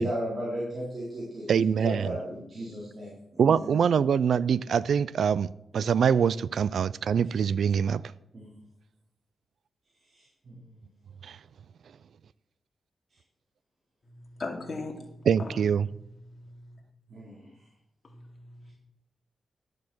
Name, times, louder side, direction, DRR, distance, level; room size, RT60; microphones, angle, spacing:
voice 1, 0.0-1.5 1.8-3.7 5.7-5.8 8.3-8.6 10.1-10.6 17.1-17.5, equal, 45° right, -7 dB, 4.0 m, -35 dB
voice 2, 1.5-2.2 3.4-8.0 11.2-11.4 15.3-15.9, right 7 dB, 75° right, 18 dB, 0.3 m, -24 dB
voice 3, 14.0-15.7 16.2-16.8 18.0-18.7, left 3 dB, 40° left, 0 dB, 2.8 m, -40 dB
12.0 x 7.1 x 6.2 m, 0.80 s
wide cardioid pair, 110°, 0 cm